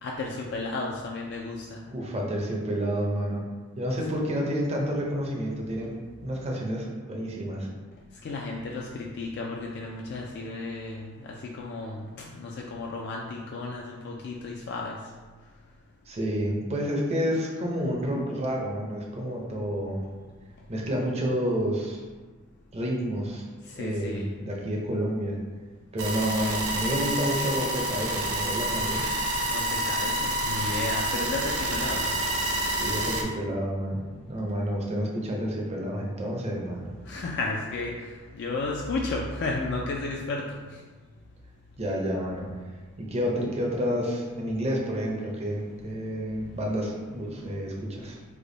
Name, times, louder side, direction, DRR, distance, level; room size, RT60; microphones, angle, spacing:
voice 1, 0.0-1.8 8.2-11.0 11.4-12.0 12.3-15.0 23.8-24.2 29.5-32.1 37.1-37.9 38.3-40.5, left 3 dB, 55° left, -1 dB, 0.3 m, -33 dB
voice 2, 1.9-3.4 3.8-5.9 6.2-7.7 16.1-20.0 20.7-22.0 22.7-23.4 23.7-25.4 25.9-29.1 32.8-36.9 41.8-42.5 43.0-48.2, equal, 30° right, -1 dB, 0.6 m, -29 dB
sound 1, 26.0-33.2, right 1 dB, 80° right, 0.5 m, -28 dB
3.4 x 2.1 x 3.8 m, 1.4 s
head